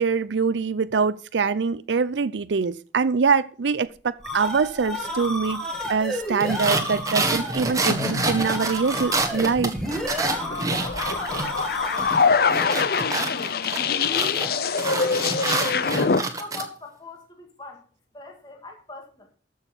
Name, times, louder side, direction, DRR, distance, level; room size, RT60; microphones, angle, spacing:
voice 1, 0.0-5.6 5.9-9.7, right 5 dB, 85° right, 0.5 m, -24 dB
sound 1, 3.9-12.5, equal, 5° left, 2.5 m, -32 dB
sound 2, 6.4-11.7 12.0-16.7, right 2 dB, 20° right, 1.5 m, -27 dB
sound 3, 7.9-8.6 10.3-16.2, left 5 dB, 55° left, 0.6 m, -24 dB
voice 2, 10.4-15.4 15.9-17.9 18.1-19.3, left 2 dB, 25° left, 2.0 m, -42 dB
14.0 x 6.4 x 5.5 m
head